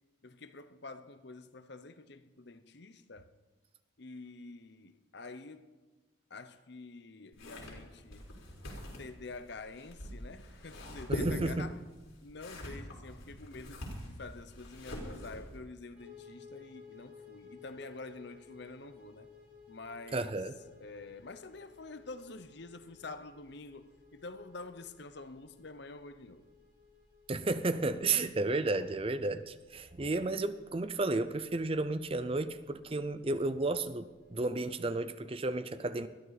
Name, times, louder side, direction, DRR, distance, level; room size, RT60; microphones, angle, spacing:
voice 1, 0.2-3.3 4.0-5.7 6.3-8.2 9.0-11.8 12.2-19.3 19.7-20.3 20.8-26.5, left 3 dB, 55° left, 0.8 m, -47 dB
sound 1, 7.3-15.6, equal, 90° left, 4.3 m, -43 dB
voice 2, 11.1-11.7 20.1-20.5 27.3-36.1, right 2 dB, 30° right, 0.5 m, -32 dB
sound 2, 16.0-34.7, left 5 dB, 5° right, 5.4 m, -59 dB
21.0 x 14.0 x 4.1 m
head